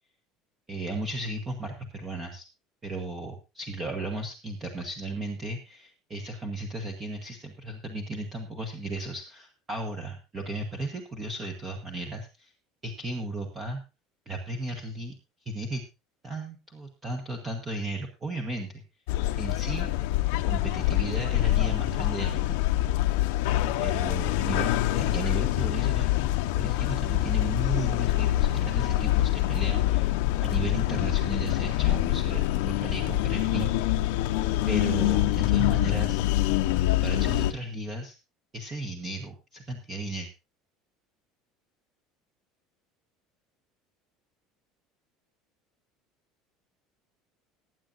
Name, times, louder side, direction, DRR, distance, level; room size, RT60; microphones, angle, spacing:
voice 1, 0.7-2.4 2.8-12.5 12.8-13.8 14.2-15.1 15.4-15.8 16.2-18.8 19.4-19.9 20.5-22.7 23.8-26.1 26.5-34.0 34.7-36.2 36.9-38.1 38.5-40.3, right 2 dB, 15° right, 3 dB, 1.3 m, -35 dB
sound 1, 19.1-37.5, left 15 dB, 75° left, 0.9 m, -25 dB
20.5 x 9.2 x 2.6 m, 0.28 s
cardioid pair, 180°, 0 cm